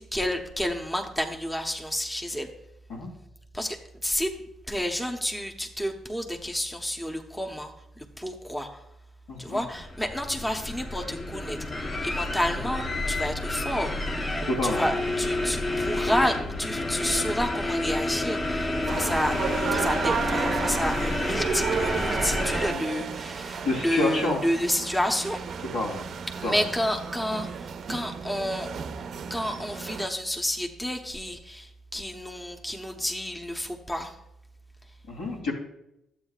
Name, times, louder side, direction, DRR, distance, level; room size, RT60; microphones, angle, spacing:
voice 1, 0.0-2.5 3.5-4.3 4.7-8.8 9.4-13.9 14.6-19.4 19.7-25.4 26.3-28.7 29.3-34.2, equal, 10° left, 3 dB, 0.9 m, -30 dB
voice 2, 9.3-9.6 14.4-14.8 22.7-22.9 23.6-24.4 25.7-26.1 26.4-26.6 35.1-35.5, left 2 dB, 90° left, -1 dB, 3.0 m, -28 dB
sound 1, 9.7-22.7, left 2 dB, 30° left, 1.1 m, -29 dB
sound 2, 18.9-30.1, right 6 dB, 60° right, 0.5 m, -32 dB
12.0 x 8.1 x 2.4 m, 0.82 s
cardioid pair, 90°, 0 cm